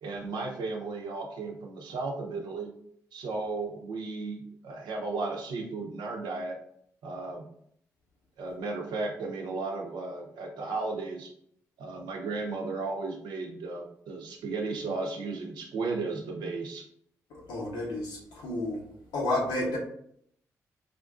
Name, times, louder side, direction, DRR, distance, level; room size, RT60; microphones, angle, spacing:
voice 1, 0.0-2.7 3.1-6.6 7.0-7.5 8.4-11.3 11.8-16.9, right 3 dB, 80° right, 1 dB, 0.6 m, -34 dB
voice 2, 17.3-18.8 19.1-19.8, left 2 dB, 85° left, -2 dB, 0.8 m, -31 dB
3.5 x 2.5 x 2.4 m, 0.68 s
supercardioid pair, 45°, 7 cm